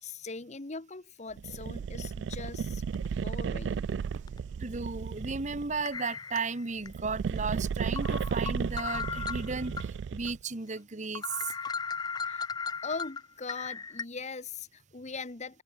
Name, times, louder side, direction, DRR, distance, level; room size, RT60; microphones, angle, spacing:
voice 1, 0.0-2.8 3.1-3.9 12.2-12.5 12.8-15.6, left 4 dB, 40° left, 1.2 m, -41 dB
sound 1, 1.4-5.8 6.7-10.4, right 6 dB, 90° right, 0.3 m, -34 dB
sound 2, 2.3-2.5 2.9-3.1 4.3-4.4 5.9-6.9 7.4-7.5 8.0-9.9 10.3-10.4 10.8-10.9 11.2-14.0, left 5 dB, 25° left, 0.4 m, -36 dB
voice 2, 4.6-11.5, right 4 dB, 45° right, 1.2 m, -35 dB
open air
head